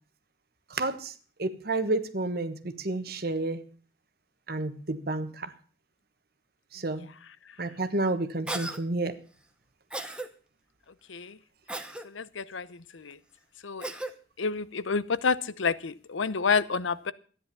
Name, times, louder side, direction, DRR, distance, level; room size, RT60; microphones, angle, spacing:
voice 1, 0.7-1.1 1.4-3.6 4.5-5.5 6.7-7.1 7.6-9.2, right 2 dB, 50° right, 11 dB, 1.3 m, -30 dB
Cough, 8.5-8.8 9.9-10.3 11.7-12.1 13.8-14.1, right 2 dB, 5° right, 1.0 m, -35 dB
voice 2, 12.0-13.2 13.6-13.9 14.4-17.1, left 5 dB, 80° left, 18 dB, 0.8 m, -29 dB
13.5 x 10.5 x 6.9 m, 0.41 s
head